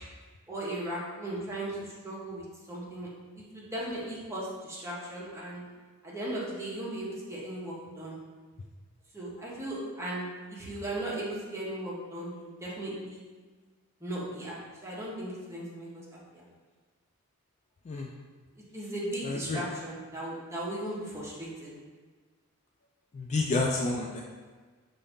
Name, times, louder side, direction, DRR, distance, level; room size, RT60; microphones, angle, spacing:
voice 1, 0.5-3.1 3.3-5.6 6.0-8.2 9.1-13.2 14.0-14.6 14.8-16.4 18.6-21.7, right 1 dB, 15° right, -6 dB, 1.0 m, -37 dB
voice 2, 19.3-19.6 23.1-24.2, left 3 dB, 35° left, 0 dB, 0.3 m, -29 dB
5.4 x 2.6 x 3.6 m, 1.4 s
head